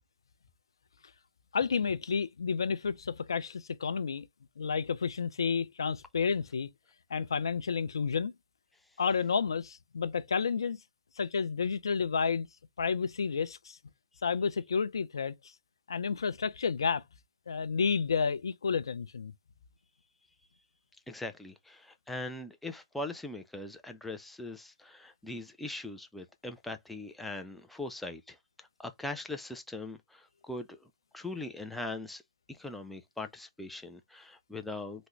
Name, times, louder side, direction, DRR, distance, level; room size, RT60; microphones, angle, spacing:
voice 1, 1.5-4.3 4.6-6.7 7.1-8.3 9.0-10.8 11.2-12.5 12.8-13.8 14.2-15.3 15.9-17.0 17.5-19.3, left 5 dB, 80° left, 0.4 m, -30 dB
voice 2, 21.1-32.2 32.5-35.1, left 2 dB, 5° left, 0.3 m, -41 dB
3.4 x 2.1 x 3.0 m
hypercardioid pair, 130°, 2 cm